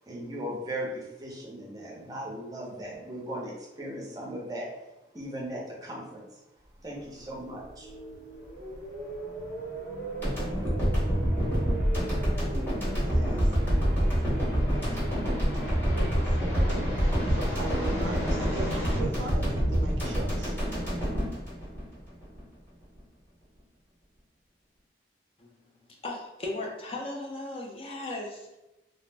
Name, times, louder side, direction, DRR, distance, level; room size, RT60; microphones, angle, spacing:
voice 1, 0.1-4.7 5.1-6.4 6.8-7.9, right 1 dB, 20° right, -2 dB, 0.5 m, -38 dB
sound 1, 6.8-16.9, right 2 dB, 85° left, 1.1 m, -41 dB
sound 2, 8.4-19.0, equal, 60° left, 0.9 m, -40 dB
sound 3, 10.2-22.4, equal, 10° left, 0.8 m, -27 dB
voice 2, 12.8-20.5, right 2 dB, 80° right, 2 dB, 0.5 m, -40 dB
voice 3, 25.7-28.6, left 2 dB, 30° left, 0 dB, 0.4 m, -37 dB
2.5 x 2.0 x 3.2 m, 1.0 s
head